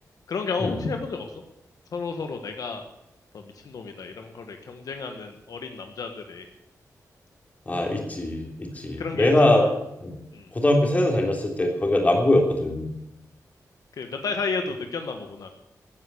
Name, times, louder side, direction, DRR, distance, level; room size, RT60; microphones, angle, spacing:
voice 1, 0.3-1.3 1.9-2.8 3.3-6.4 9.0-9.7 10.3-10.5 13.9-15.5, left 4 dB, 70° left, 5 dB, 1.5 m, -32 dB
voice 2, 7.7-9.6 10.0-10.2 10.5-12.9, left 1 dB, 25° left, 1 dB, 3.4 m, -22 dB
15.0 x 9.7 x 8.4 m, 0.85 s
wide cardioid pair, 145°, 6 cm